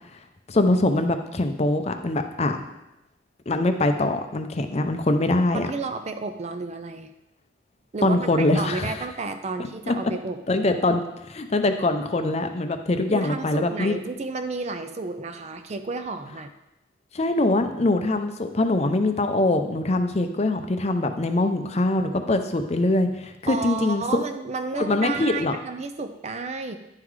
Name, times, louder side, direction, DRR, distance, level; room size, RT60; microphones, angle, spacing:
voice 1, 0.5-2.6 3.5-5.7 8.0-9.0 9.9-10.0 10.5-11.0 11.3-13.9 17.1-24.0 24.7-25.5, left 2 dB, 35° left, 6 dB, 0.6 m, -23 dB
voice 2, 5.5-7.1 7.9-10.4 13.1-16.5 23.5-26.8, right 3 dB, 35° right, 8 dB, 0.5 m, -32 dB
10.5 x 3.9 x 4.7 m, 0.91 s
head